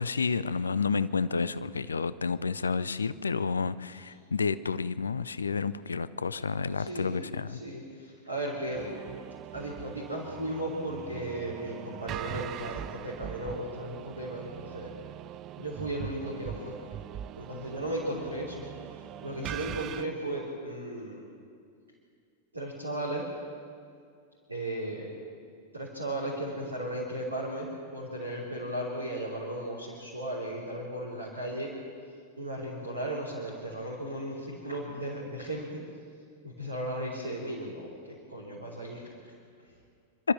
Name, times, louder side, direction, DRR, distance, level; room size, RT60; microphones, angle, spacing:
voice 1, 0.0-7.6, left 5 dB, 75° left, 16 dB, 0.5 m, -30 dB
voice 2, 6.8-8.9 9.5-14.9 15.6-16.8 17.4-18.6 19.2-21.3 22.5-23.3 24.5-25.1 25.7-31.7 32.4-35.8 36.4-39.1, right 1 dB, 80° right, -5 dB, 3.6 m, -36 dB
sound 1, 8.7-20.1, right 12 dB, 35° right, 0.5 m, -41 dB
26.5 x 13.0 x 7.6 m, 2.3 s
figure-of-eight pair, 90°, 0 cm